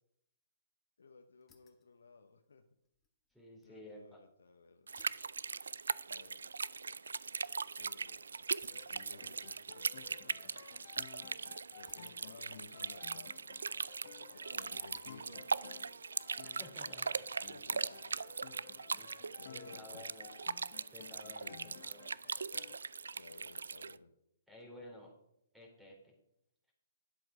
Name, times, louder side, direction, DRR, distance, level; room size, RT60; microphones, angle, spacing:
voice 1, 1.0-2.6 3.6-4.9 6.1-6.5 7.8-10.7 11.7-13.3 14.3-15.5 17.5-18.2 19.4-20.1 21.2-21.9 23.1-24.1, left 4 dB, 80° left, 6 dB, 0.9 m, -57 dB
sound 1, 1.4-1.9 2.3-3.8 4.1-4.2 5.0-7.8 8.6-9.7 10.1-11.1 11.8-12.7 13.0-13.6 14.1-14.5 14.9-15.3 16.0-16.4, left 7 dB, 15° left, 1.3 m, -70 dB
voice 2, 3.3-4.2 16.4-17.3 18.9-19.1 19.5-20.3 20.9-22.0 24.5-25.1 25.5-26.1, left 1 dB, 5° right, -1 dB, 3.5 m, -53 dB
sound 2, 4.9-24.0, right 5 dB, 80° right, 0.4 m, -40 dB
sound 3, 8.7-22.8, left 12 dB, 45° left, 0.4 m, -57 dB
10.5 x 7.9 x 4.9 m, 0.78 s
hypercardioid pair, 135°, 0 cm